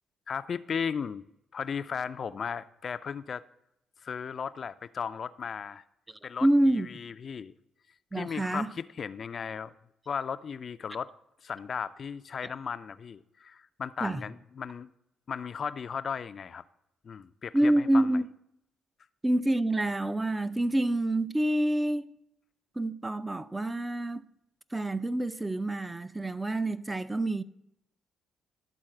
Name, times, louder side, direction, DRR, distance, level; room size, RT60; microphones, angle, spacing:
voice 1, 0.3-1.2 1.5-3.4 4.0-5.8 6.2-6.5 6.8-7.5 8.1-9.7 10.1-11.1 11.4-14.9 15.3-16.6 17.0-18.1, left 6 dB, 50° left, 0.4 m, -36 dB
voice 2, 6.1-6.9 8.1-8.7 12.4-12.5 14.0-14.2 17.5-18.3 19.2-22.1 22.8-24.3 24.7-27.4, right 1 dB, 15° right, 0.4 m, -27 dB
11.5 x 4.0 x 7.6 m
cardioid pair, 90°, 0 cm